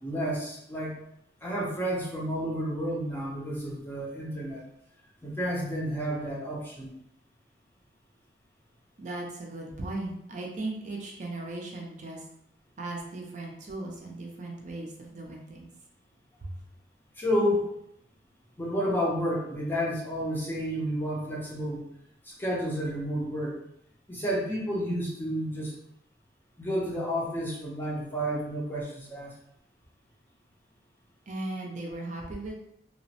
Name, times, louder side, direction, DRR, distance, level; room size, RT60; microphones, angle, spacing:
voice 1, 0.0-1.0 1.4-4.6 5.2-6.9 17.2-17.7 18.6-21.8 22.3-23.6 24.1-25.7 26.6-29.3, equal, 10° left, -4 dB, 0.5 m, -30 dB
voice 2, 9.0-12.2 12.8-15.7 16.4-16.5 31.3-32.5, right 2 dB, 45° right, -1 dB, 0.5 m, -37 dB
2.9 x 2.0 x 2.7 m, 0.74 s
head